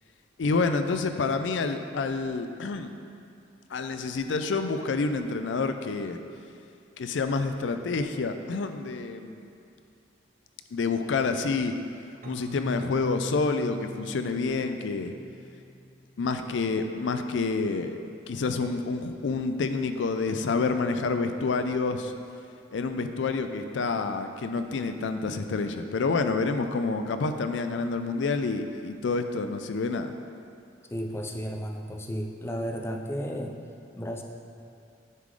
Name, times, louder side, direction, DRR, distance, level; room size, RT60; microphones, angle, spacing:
voice 1, 0.4-2.9 3.7-6.2 7.0-9.4 10.7-11.7 12.2-15.1 16.2-18.0 18.3-22.1 22.7-30.1, left 4 dB, 70° left, 8 dB, 0.4 m, -28 dB
Keyboard (musical), 12.2-15.9, left 2 dB, 45° right, 0.7 m, -39 dB
voice 2, 30.9-33.6 33.9-34.2, equal, 15° left, 2 dB, 0.5 m, -33 dB
9.6 x 3.7 x 4.8 m, 2.5 s
head